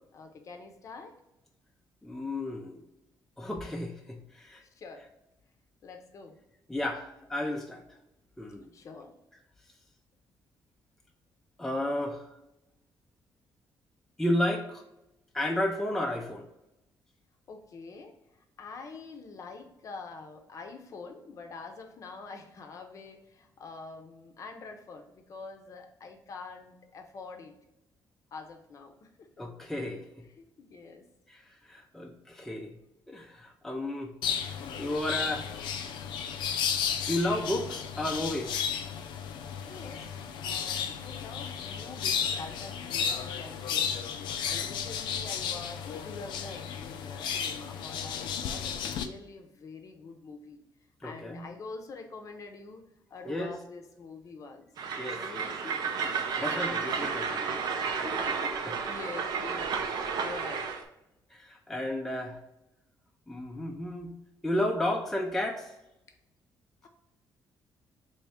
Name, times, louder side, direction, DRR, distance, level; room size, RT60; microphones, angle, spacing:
voice 1, 0.1-1.2 4.6-5.1 5.8-6.4 8.7-9.2 17.5-27.5 28.3-29.4 30.4-31.1 39.7-43.9 44.4-50.6 51.0-52.8 53.1-54.7 55.0-56.8 57.9-60.7 66.8-66.9, left 4 dB, 45° left, 5 dB, 0.6 m, -46 dB
voice 2, 2.0-2.8 3.4-4.6 6.7-7.8 8.4-8.7 11.6-12.3 14.2-14.8 15.3-16.5 29.4-30.0 31.3-32.7 33.1-34.1 34.5-35.5 37.1-38.6 51.0-51.4 53.3-53.5 54.9-55.5 56.4-57.7 61.3-62.4 63.3-64.1 64.4-65.7, left 1 dB, 5° left, 2 dB, 0.4 m, -32 dB
sound 1, 34.2-49.1, left 7 dB, 85° left, 0.4 m, -33 dB
Train, 54.8-60.8, right 5 dB, 65° right, 0.6 m, -32 dB
3.4 x 3.1 x 4.3 m, 0.89 s
cardioid pair, 140°, 8 cm